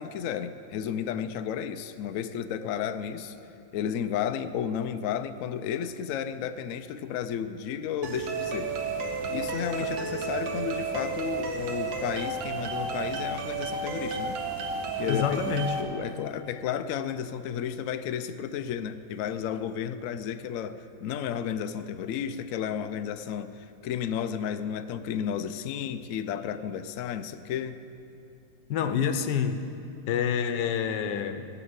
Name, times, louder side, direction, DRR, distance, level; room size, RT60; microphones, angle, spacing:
voice 1, 0.0-3.4 3.7-8.7 9.3-14.4 15.0-15.4 15.8-27.8, left 8 dB, 85° left, 10 dB, 0.7 m, -33 dB
sound 1, 8.0-15.8, right 4 dB, 80° right, 1.7 m, -32 dB
voice 2, 15.1-15.8 28.7-29.6 30.1-31.5, left 8 dB, 70° left, 9 dB, 1.3 m, -27 dB
17.0 x 5.9 x 8.0 m, 2.7 s
omnidirectional pair, 2.0 m